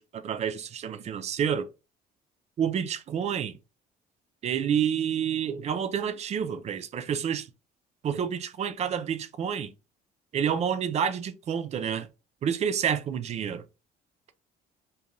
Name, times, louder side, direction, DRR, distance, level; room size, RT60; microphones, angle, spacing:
voice 1, 0.0-1.7 2.6-3.6 4.4-7.5 8.0-9.7 10.3-12.1 12.4-13.6, right 8 dB, 40° right, 0.4 m, -29 dB
2.5 x 2.1 x 2.9 m
cardioid pair, 110°, 17 cm